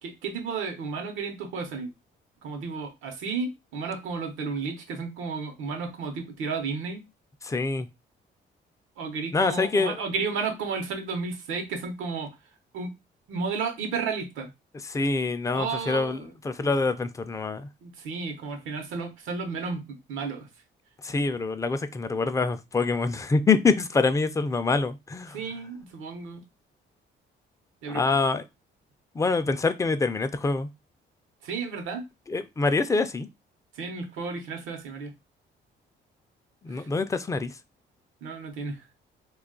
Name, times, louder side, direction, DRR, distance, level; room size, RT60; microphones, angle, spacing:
voice 1, 0.0-1.9 2.4-7.1 9.0-12.3 12.7-12.9 13.3-14.5 15.5-16.3 16.6-16.7 17.8-20.5 25.3-26.4 27.8-28.0 31.4-32.0 33.7-35.1 36.7-36.9 38.2-38.8, right 4 dB, 90° right, 0.8 m, -33 dB
voice 2, 7.4-7.9 9.3-10.0 14.8-17.7 21.0-25.4 27.9-28.4 29.1-30.7 32.3-33.3 36.6-37.5, left 4 dB, 15° left, 0.4 m, -25 dB
2.3 x 2.3 x 3.7 m
cardioid pair, 90°, 20 cm